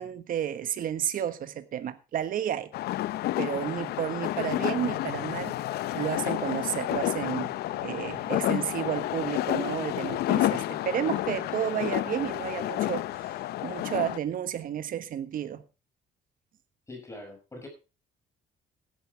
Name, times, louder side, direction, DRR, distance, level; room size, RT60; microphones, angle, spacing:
voice 1, 0.0-2.7 3.4-5.6 5.9-7.5 7.8-15.6, right 10 dB, 55° right, 1.4 m, -32 dB
sound 1, 2.7-14.2, left 15 dB, 70° left, 0.7 m, -30 dB
voice 2, 16.9-17.7, left 2 dB, 15° left, 6.2 m, -44 dB
16.0 x 11.0 x 3.4 m
cardioid pair, 110°, 17 cm